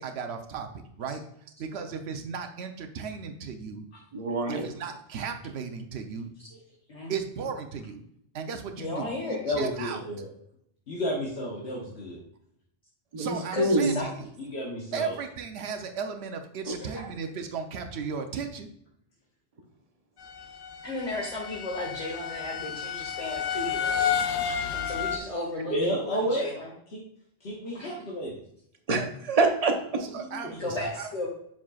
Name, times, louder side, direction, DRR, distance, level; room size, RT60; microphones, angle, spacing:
voice 1, 0.0-3.9 4.5-6.3 7.1-8.0 8.3-10.0 13.2-14.3 14.9-18.7 30.0-31.1, right 6 dB, 85° right, 5 dB, 1.0 m, -36 dB
voice 2, 4.1-4.7 13.1-14.0 16.7-16.8 28.9-30.0, right 2 dB, 40° right, 4 dB, 0.9 m, -25 dB
voice 3, 8.8-9.4 13.5-14.1 20.8-25.7 26.0-26.7 27.7-27.9 30.6-31.3, left 2 dB, 35° left, -3 dB, 1.4 m, -35 dB
voice 4, 9.4-10.3 10.9-12.2 14.4-15.2 16.8-17.0 25.7-26.6 26.9-27.0 27.4-28.4 30.1-30.7, equal, 80° left, -3 dB, 1.4 m, -31 dB
sound 1, 20.2-25.2, left 8 dB, 60° left, 0.7 m, -31 dB
7.4 x 5.8 x 2.3 m, 0.71 s
omnidirectional pair, 1.1 m